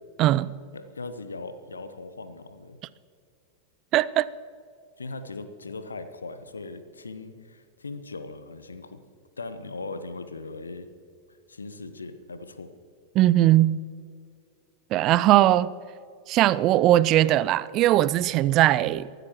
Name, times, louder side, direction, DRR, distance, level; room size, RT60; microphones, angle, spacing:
voice 1, 0.2-0.5 3.9-4.3 13.1-13.8 14.9-15.7 16.3-19.1, right 14 dB, 35° right, 0.4 m, -20 dB
voice 2, 0.7-2.8 5.0-9.0 9.4-10.9 11.3-12.7, left 3 dB, 75° left, 1.0 m, -39 dB
24.0 x 13.0 x 3.0 m
figure-of-eight pair, 90°, 0 cm